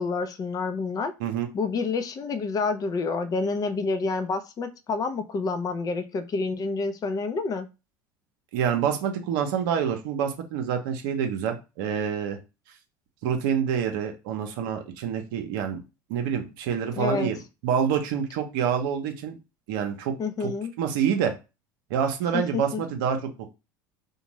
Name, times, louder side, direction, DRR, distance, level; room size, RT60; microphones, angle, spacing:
voice 1, 0.0-1.1 1.5-7.7 16.9-17.3 20.2-20.7 22.3-22.8, left 4 dB, 35° left, 10 dB, 0.5 m, -28 dB
voice 2, 8.5-12.4 13.2-15.8 16.1-17.4 17.6-19.4 19.7-20.1 20.4-20.5 20.8-21.3 21.9-23.6, right 8 dB, 75° right, 5 dB, 0.7 m, -27 dB
2.5 x 2.2 x 3.0 m, 0.28 s
hypercardioid pair, 80°, 11 cm